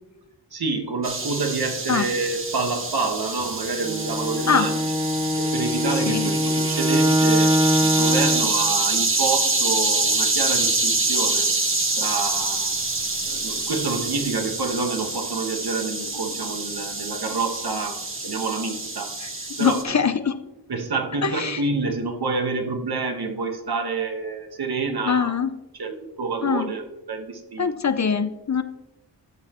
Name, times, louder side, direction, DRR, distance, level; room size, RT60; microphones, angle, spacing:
voice 1, 0.5-4.8 5.4-7.5 7.8-11.5 11.9-12.8 13.2-19.1 19.6-19.8 20.7-25.4 25.8-27.7, right 4 dB, 60° right, 4 dB, 1.4 m, -28 dB
sound 1, 1.0-19.8, right 2 dB, 30° right, 1.5 m, -26 dB
Bowed string instrument, 3.8-8.6, equal, 15° right, 1.4 m, -22 dB
voice 2, 5.8-6.3 19.2-19.3 19.6-20.4 21.2-21.6 25.0-25.5 26.4-26.7 27.6-28.6, left 6 dB, 40° left, 11 dB, 0.6 m, -23 dB
12.5 x 6.4 x 3.0 m, 0.97 s
cardioid pair, 50°, 42 cm